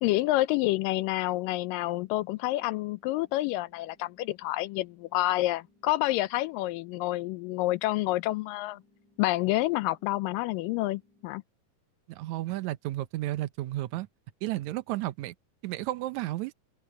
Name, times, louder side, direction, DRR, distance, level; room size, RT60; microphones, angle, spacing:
voice 1, 0.0-8.8 9.2-11.4, left 18 dB, 80° left, 2.2 m, -28 dB
sound 1, 1.3-11.3, left 2 dB, 25° right, 6.0 m, -66 dB
voice 2, 12.1-14.1 14.4-15.3 15.6-16.5, right 16 dB, 75° right, 1.7 m, -32 dB
open air
omnidirectional pair, 4.1 m